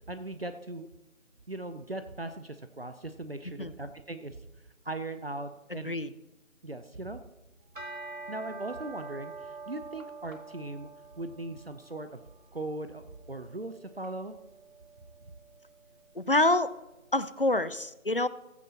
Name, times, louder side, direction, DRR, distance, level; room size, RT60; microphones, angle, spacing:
voice 1, 0.1-0.9 1.5-4.4 4.8-6.0 6.6-7.2 8.3-10.9 11.2-12.2 12.5-14.4, right 2 dB, 45° right, 10 dB, 0.8 m, -39 dB
voice 2, 5.7-6.1 16.1-16.7 17.1-18.3, left 2 dB, 45° left, 15 dB, 0.5 m, -26 dB
sound 1, 7.6-16.9, right 3 dB, 80° right, 2.0 m, -47 dB
15.5 x 15.0 x 2.9 m, 1.0 s
figure-of-eight pair, 165°, 40 cm